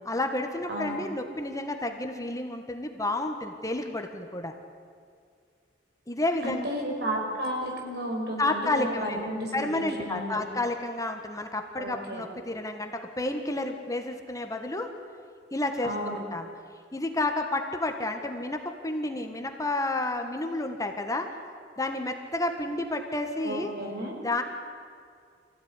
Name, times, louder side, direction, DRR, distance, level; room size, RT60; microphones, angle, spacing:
voice 1, 0.0-4.5 6.1-6.7 8.4-14.9 15.5-16.5 16.9-21.3 21.8-23.7 24.2-24.4, left 2 dB, 20° left, 4 dB, 1.7 m, -30 dB
voice 2, 0.7-1.0 6.4-10.5 11.8-12.2 15.8-16.2 23.4-24.1, equal, 65° right, 1 dB, 5.7 m, -33 dB
25.0 x 16.0 x 10.0 m, 2.2 s
head